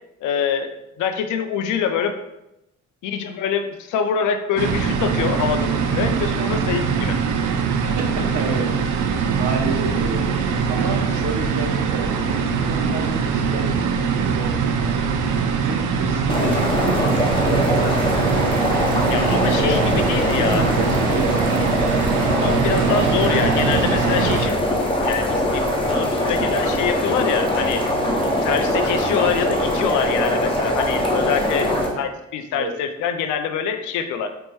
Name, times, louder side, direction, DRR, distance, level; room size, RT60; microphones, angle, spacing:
voice 1, 0.2-2.2 3.0-7.2 19.1-20.7 22.4-24.6 25.0-27.8 28.4-34.3, left 7 dB, 85° left, 8 dB, 0.5 m, -25 dB
sound 1, 4.6-24.5, right 6 dB, 80° right, 0.4 m, -22 dB
voice 2, 7.8-8.7 9.3-10.2 10.7-15.3 15.5-16.9 19.2-21.6 31.8-32.0 32.5-32.7, right 3 dB, 60° right, 2 dB, 0.8 m, -30 dB
sound 2, 16.3-31.9, left 1 dB, 15° left, 0.8 m, -22 dB
4.5 x 2.1 x 3.0 m, 0.88 s
cardioid pair, 90°, 30 cm